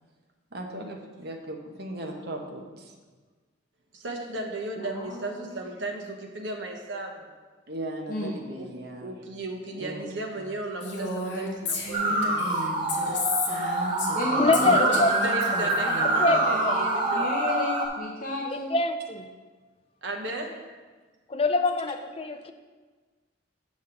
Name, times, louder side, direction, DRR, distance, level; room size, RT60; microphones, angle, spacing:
voice 1, 0.5-2.9 7.7-9.1 9.8-10.1 14.3-14.8, right 1 dB, 55° right, 2 dB, 0.9 m, -38 dB
voice 2, 3.9-7.3 8.6-8.7 9.0-12.6 14.6-17.3 20.0-20.5, right 2 dB, 80° right, 2 dB, 1.0 m, -35 dB
voice 3, 4.7-5.5 8.1-8.4 14.1-15.1 15.8-18.7, left 1 dB, 45° left, -2 dB, 0.8 m, -32 dB
Female speech woman speaking, 10.8-14.2 14.5-16.3, left 2 dB, 65° left, 1.3 m, -32 dB
sound 1, 11.9-17.9, right 2 dB, 25° right, 0.8 m, -26 dB
voice 4, 14.4-15.1 16.2-16.4 16.6-16.7 18.7-19.3 21.3-22.5, left 3 dB, 30° left, 8 dB, 0.4 m, -24 dB
7.2 x 6.3 x 3.8 m, 1.4 s
head